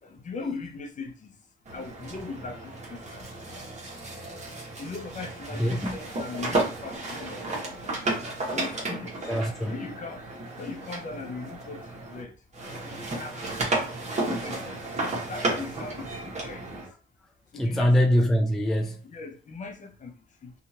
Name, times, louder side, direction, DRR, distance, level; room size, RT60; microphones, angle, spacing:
voice 1, 0.0-1.4 1.7-3.3 3.5-3.6 4.8-7.8 8.5-9.1 9.7-10.2 10.6-12.3 12.8-13.5 14.1-16.7 17.5-18.1 18.7-20.5, left 4 dB, 40° left, 0.6 m, -39 dB
sound 1, 1.7-12.2 12.5-16.9, right 2 dB, 35° right, 1.1 m, -33 dB
voice 2, 5.5-6.0 9.3-9.7 17.5-19.0, equal, ahead, 0.3 m, -23 dB
2.7 x 2.4 x 2.8 m
cardioid pair, 90°, 20 cm